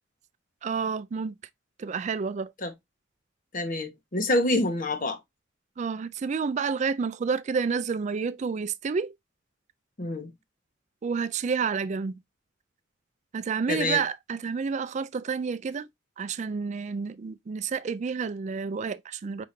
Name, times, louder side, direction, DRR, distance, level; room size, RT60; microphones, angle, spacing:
voice 1, 0.6-1.4 1.8-2.5 5.8-9.1 11.0-12.2 13.3-15.9 16.2-19.5, right 5 dB, 40° right, 0.3 m, -29 dB
voice 2, 3.5-5.2 10.0-10.3 13.7-14.0, left 1 dB, 45° left, 1.0 m, -27 dB
4.8 x 3.6 x 2.6 m
head